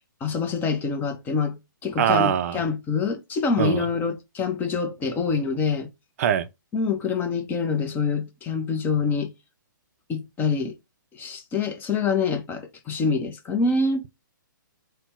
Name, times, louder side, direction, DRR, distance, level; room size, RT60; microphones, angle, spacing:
voice 1, 0.2-5.9 6.7-9.3 10.1-10.8 11.1-14.1, left 4 dB, 15° left, 0.7 m, -26 dB
voice 2, 2.0-2.6 3.6-3.8 6.2-6.5, right 9 dB, 45° right, 0.4 m, -22 dB
4.1 x 2.2 x 4.3 m
hypercardioid pair, 140°, 11 cm